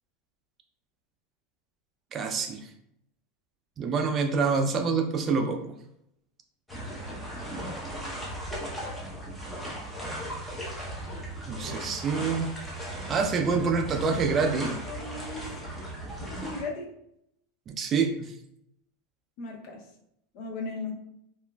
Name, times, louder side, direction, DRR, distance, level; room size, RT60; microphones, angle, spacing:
voice 1, 2.1-2.7 3.8-5.7 11.5-12.5 13.1-14.8 17.7-18.3, right 5 dB, 30° right, 5 dB, 0.3 m, -26 dB
sound 1, 6.7-16.6, right 1 dB, 5° left, 0.7 m, -37 dB
voice 2, 14.8-15.4 16.2-16.9 19.4-19.8 20.3-20.9, left 3 dB, 55° left, 1 dB, 0.5 m, -37 dB
2.9 x 2.4 x 2.2 m, 0.76 s
supercardioid pair, 130°, 0 cm